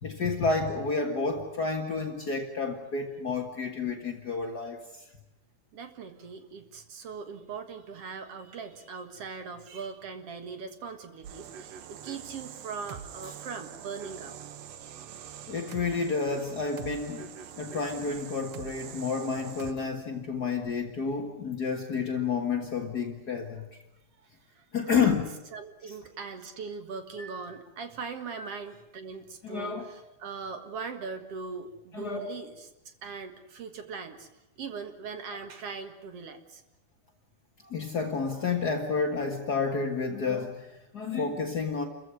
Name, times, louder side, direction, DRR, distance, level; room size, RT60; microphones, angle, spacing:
voice 1, 0.0-5.0 15.5-17.3 17.6-23.6 24.7-25.2 27.2-27.4 28.4-28.5 29.4-29.9 31.9-32.3 37.6-41.9, left 4 dB, 70° left, 2 dB, 0.9 m, -30 dB
voice 2, 5.7-14.4 24.5-25.1 25.5-34.3 34.6-36.6, right 5 dB, 55° right, 8 dB, 1.9 m, -40 dB
sound 1, 11.2-19.7, right 9 dB, 85° right, 1.4 m, -44 dB
29.0 x 15.0 x 9.7 m, 0.94 s
omnidirectional pair, 4.7 m